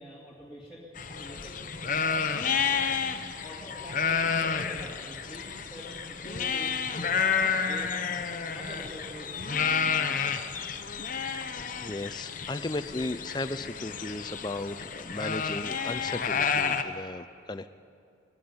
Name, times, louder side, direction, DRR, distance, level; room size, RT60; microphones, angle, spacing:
voice 1, 0.0-3.0 3.4-8.0 8.5-9.9, equal, 5° right, -7 dB, 2.7 m, -46 dB
sound 1, 1.0-16.8, left 6 dB, 40° left, 0.8 m, -30 dB
voice 2, 11.8-17.7, left 2 dB, 20° left, 11 dB, 0.5 m, -35 dB
21.5 x 15.5 x 9.5 m, 2.5 s
head